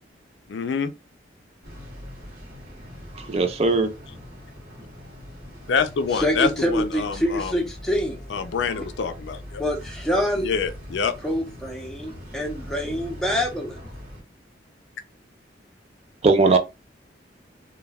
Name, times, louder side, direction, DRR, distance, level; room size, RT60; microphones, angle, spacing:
voice 1, 0.5-0.9 5.7-7.5 8.3-9.6 10.4-11.1, left 5 dB, 75° left, 0.4 m, -26 dB
sound 1, 1.6-14.2, left 1 dB, 50° right, 1.1 m, -41 dB
voice 2, 3.1-3.9 16.2-16.6, right 3 dB, 35° right, 0.3 m, -19 dB
voice 3, 6.1-8.3 9.6-10.6 11.2-13.8, equal, 5° left, 0.6 m, -26 dB
2.2 x 2.2 x 3.3 m
head